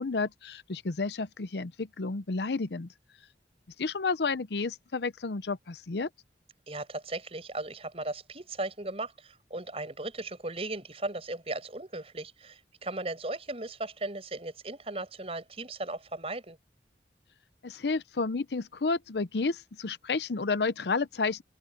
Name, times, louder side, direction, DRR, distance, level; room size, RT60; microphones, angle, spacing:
voice 1, 0.0-2.9 3.8-6.1 17.6-21.4, left 4 dB, 75° left, 0.7 m, -31 dB
voice 2, 6.7-16.6, right 2 dB, 35° right, 5.7 m, -37 dB
open air
head